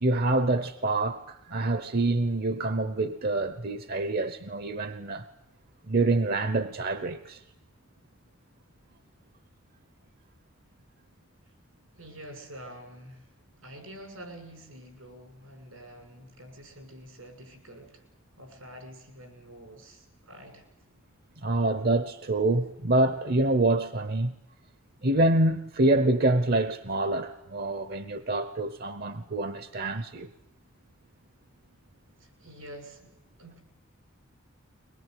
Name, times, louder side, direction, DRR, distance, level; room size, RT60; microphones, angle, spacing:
voice 1, 0.0-5.3 5.9-7.4 21.4-24.3 25.0-30.3, right 2 dB, 50° right, 0.9 m, -26 dB
voice 2, 12.0-13.4 13.6-18.0 18.4-20.7 32.2-33.6, right 1 dB, 90° right, 6.5 m, -47 dB
23.0 x 21.0 x 9.4 m
head